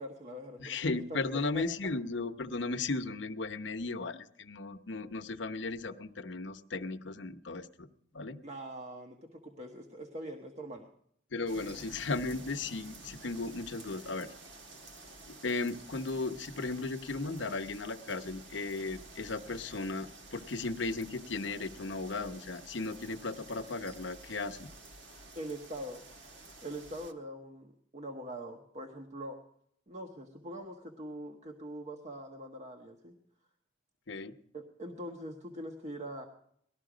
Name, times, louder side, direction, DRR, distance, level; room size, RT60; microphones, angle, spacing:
voice 1, 0.0-1.2 1.5-1.6 8.4-10.8 25.3-26.0 26.6-29.4 29.9-33.1 34.5-36.3, right 1 dB, 35° right, 3 dB, 1.2 m, -43 dB
voice 2, 0.6-8.4 11.3-14.3 15.3-24.7 34.1-34.4, left 3 dB, 70° left, 8 dB, 0.9 m, -36 dB
sound 1, 11.5-27.1, right 2 dB, 70° right, 1.6 m, -51 dB
19.0 x 13.5 x 5.0 m, 0.69 s
head